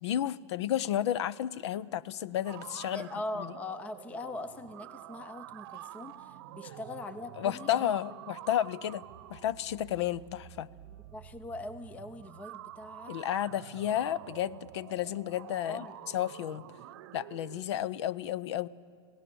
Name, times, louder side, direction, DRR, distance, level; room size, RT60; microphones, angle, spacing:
voice 1, 0.0-3.1 7.4-9.0 9.3-10.7 13.1-15.8 16.1-16.6 17.1-18.7, left 11 dB, 75° left, 21 dB, 0.6 m, -32 dB
sound 1, 2.4-17.6, right 14 dB, 55° right, 0.8 m, -48 dB
voice 2, 2.9-7.9 10.8-13.2 15.6-16.1, left 2 dB, 10° left, 13 dB, 0.5 m, -41 dB
27.0 x 17.5 x 6.9 m, 2.3 s
supercardioid pair, 165°, 14 cm